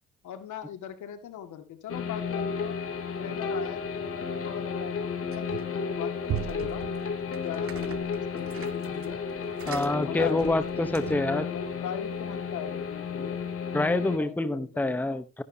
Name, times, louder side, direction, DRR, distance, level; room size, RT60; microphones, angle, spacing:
voice 1, 0.2-2.8 3.2-6.8 7.4-9.2 9.9-10.6 10.9-13.4 14.2-15.2, left 9 dB, 75° left, 7 dB, 2.1 m, -40 dB
sound 1, 1.9-14.2, left 5 dB, 50° left, 3.0 m, -33 dB
sound 2, 5.3-5.8 6.2-11.4, right 10 dB, 50° right, 0.9 m, -39 dB
voice 2, 9.7-11.4 13.7-15.4, left 2 dB, 5° left, 12 dB, 0.9 m, -27 dB
14.0 x 11.0 x 2.8 m, 0.28 s
cardioid pair, 90°, 30 cm